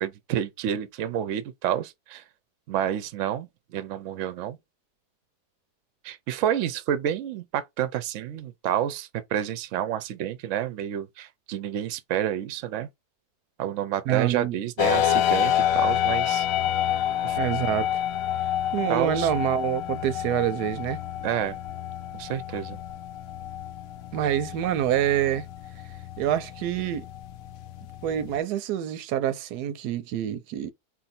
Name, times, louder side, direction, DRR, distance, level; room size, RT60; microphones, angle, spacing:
voice 1, 0.0-2.2 2.7-4.6 6.0-12.9 13.6-16.5 17.2-17.4 18.9-19.3 21.2-21.6 22.1-22.8, right 10 dB, 65° right, 0.8 m, -29 dB
voice 2, 14.1-14.6 17.4-18.0 18.7-21.0 24.1-25.5 26.2-27.1 28.0-30.7, right 11 dB, 90° right, 1.1 m, -26 dB
sound 1, 14.8-28.4, left 11 dB, 70° left, 0.9 m, -28 dB
4.2 x 2.6 x 4.2 m
omnidirectional pair, 1.7 m